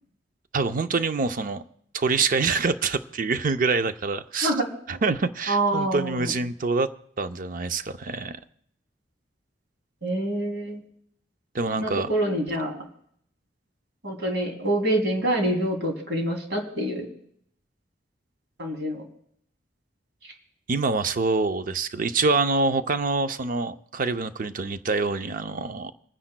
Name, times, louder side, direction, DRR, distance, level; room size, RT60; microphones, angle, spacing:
voice 1, 0.5-1.6 1.9-4.5 4.9-6.9 7.2-8.4 11.5-12.1 20.7-25.9, right 4 dB, 50° right, 10 dB, 0.6 m, -25 dB
voice 2, 5.5-6.3 10.0-10.8 11.7-12.8 14.0-17.1 18.6-19.0, right 1 dB, 75° right, 1 dB, 2.9 m, -26 dB
29.5 x 10.0 x 2.2 m, 0.68 s
head